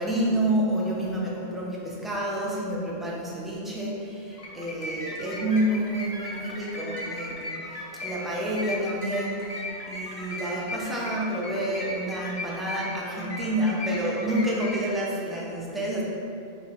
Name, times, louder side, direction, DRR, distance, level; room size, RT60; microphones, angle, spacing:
voice 1, 0.0-16.0, right 1 dB, ahead, -5 dB, 0.4 m, -29 dB
sound 1, 4.3-14.9, left 1 dB, 40° left, 0.6 m, -37 dB
sound 2, 4.8-6.1 7.0-8.4 8.7-9.6 10.4-11.3, equal, 35° right, 0.7 m, -42 dB
4.0 x 2.9 x 4.4 m, 2.7 s
omnidirectional pair, 1.1 m